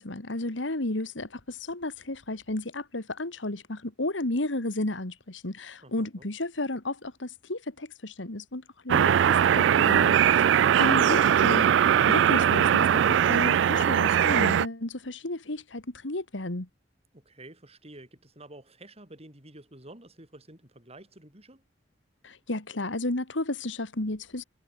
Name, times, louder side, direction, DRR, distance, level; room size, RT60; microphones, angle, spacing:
voice 1, 0.0-11.7 12.0-16.7 22.2-24.4, left 2 dB, 80° left, 2.2 m, -33 dB
voice 2, 5.8-6.3 17.1-21.6, right 1 dB, 35° right, 6.7 m, -50 dB
sound 1, 8.9-14.7, right 9 dB, 70° right, 0.3 m, -21 dB
head